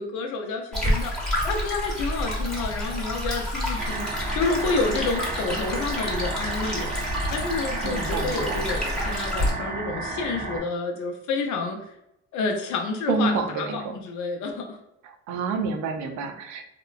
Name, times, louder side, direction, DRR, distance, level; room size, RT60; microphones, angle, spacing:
voice 1, 0.0-6.9 7.3-11.8 12.3-14.8, left 3 dB, 75° left, 3 dB, 0.6 m, -29 dB
Stream, 0.7-9.5, equal, ahead, 0.9 m, -29 dB
sound 1, 3.8-10.6, right 2 dB, 30° right, 0.6 m, -33 dB
voice 2, 7.8-8.6 13.1-14.0 15.0-16.7, right 4 dB, 75° right, 5 dB, 0.5 m, -28 dB
2.9 x 2.1 x 2.3 m, 0.83 s
cardioid pair, 90°, 29 cm